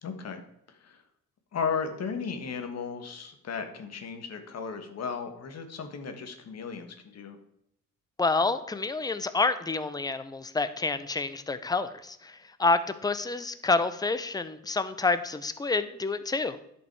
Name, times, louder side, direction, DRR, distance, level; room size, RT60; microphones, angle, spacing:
voice 1, 0.0-0.4 0.8-1.0 1.5-7.4, left 5 dB, 60° left, 6 dB, 1.5 m, -35 dB
voice 2, 8.2-16.6, left 3 dB, 15° left, 12 dB, 0.7 m, -28 dB
10.5 x 5.4 x 4.7 m, 0.77 s
cardioid pair, 90°, 30 cm